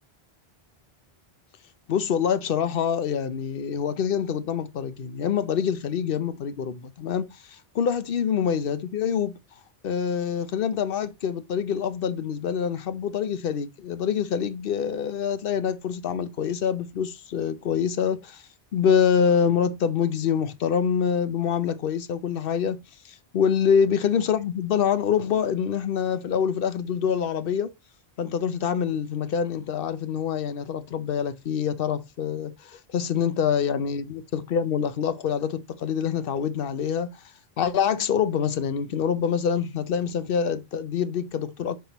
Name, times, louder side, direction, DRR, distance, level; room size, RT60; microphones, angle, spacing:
voice 1, 1.9-9.4 9.8-18.4 18.7-22.8 23.1-27.7 28.2-37.1 37.6-41.8, left 7 dB, 65° left, 0.9 m, -25 dB
10.0 x 3.7 x 2.9 m
omnidirectional pair, 1.0 m